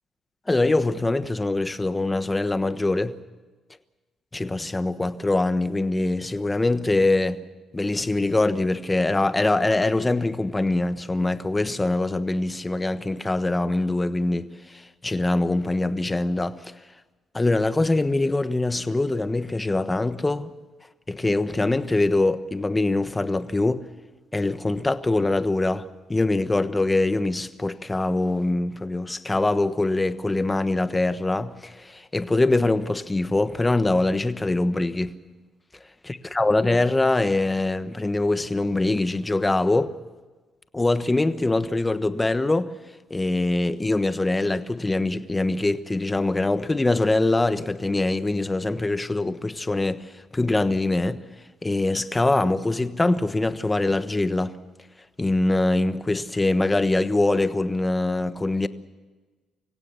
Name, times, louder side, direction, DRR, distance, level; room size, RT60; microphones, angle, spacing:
voice 1, 0.5-3.2 4.3-7.4 7.7-16.7 17.3-20.5 21.1-23.9 24.3-35.1 36.3-39.9 40.7-42.7 43.1-51.2 51.6-54.6 55.2-58.7, left 2 dB, 15° left, 1.2 m, -23 dB
25.5 x 16.5 x 7.0 m
cardioid pair, 90°, 0 cm